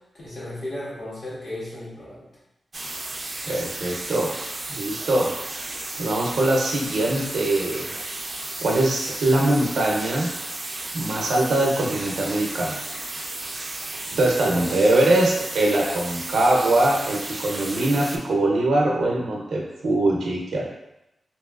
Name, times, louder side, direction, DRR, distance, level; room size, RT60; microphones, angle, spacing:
voice 1, 0.2-2.2 4.9-5.2 8.4-8.8 14.3-14.9, left 1 dB, 65° left, -9 dB, 1.4 m, -36 dB
sound 1, 2.7-18.2, right 2 dB, 35° right, 0.3 m, -34 dB
voice 2, 3.4-4.3 4.7-5.3 6.0-8.0 8.6-10.3 10.9-12.8 14.2-20.6, right 1 dB, 90° right, -1 dB, 0.6 m, -22 dB
2.9 x 2.9 x 2.3 m, 0.89 s
wide cardioid pair, 120°, 0 cm